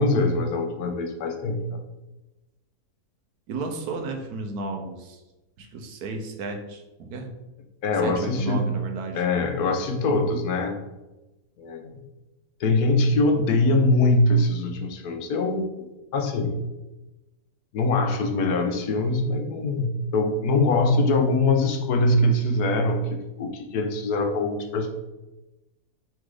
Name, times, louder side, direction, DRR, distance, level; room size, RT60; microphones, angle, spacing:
voice 1, 0.0-1.8 7.8-8.7 9.1-10.8 11.6-11.9 12.6-16.6 17.7-24.9, left 2 dB, 80° left, 5 dB, 1.3 m, -23 dB
voice 2, 3.5-5.2 5.6-7.4 8.0-9.2, right 3 dB, 80° right, 4 dB, 1.3 m, -33 dB
6.4 x 4.0 x 3.8 m, 1.0 s
omnidirectional pair, 1.6 m